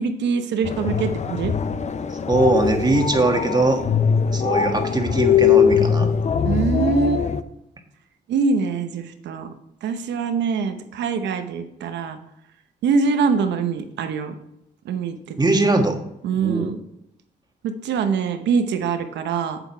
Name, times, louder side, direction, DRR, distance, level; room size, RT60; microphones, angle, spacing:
voice 1, 0.0-1.5 6.4-7.3 8.3-9.5 9.8-12.2 12.8-14.3 14.8-15.2 16.2-16.8 17.6-19.6, right 5 dB, 85° right, 8 dB, 0.9 m, -23 dB
sound 1, 0.6-7.4, left 7 dB, 40° left, 0.6 m, -21 dB
voice 2, 2.3-3.8 4.3-6.1 15.4-16.0 16.4-16.7, right 2 dB, 25° right, 4 dB, 1.5 m, -20 dB
7.9 x 7.0 x 4.5 m, 0.83 s
cardioid pair, 75°, 18 cm